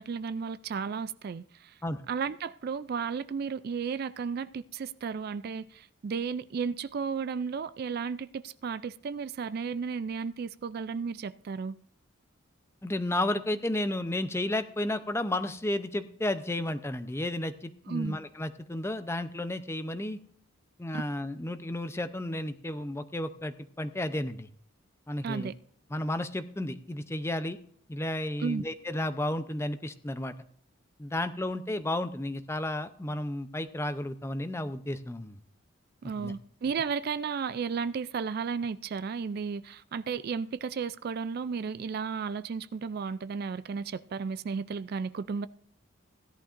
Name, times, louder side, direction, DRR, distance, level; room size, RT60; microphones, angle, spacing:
voice 1, 0.0-1.8 2.1-11.8 17.9-18.2 20.9-21.0 25.2-25.5 28.4-28.6 36.0-45.5, right 5 dB, 45° right, 0.3 m, -34 dB
voice 2, 12.8-20.2 20.8-24.5 25.1-25.5 25.9-27.6 27.9-30.3 31.0-35.4 36.0-36.3, left 1 dB, 10° left, 0.6 m, -32 dB
16.5 x 11.0 x 2.5 m
head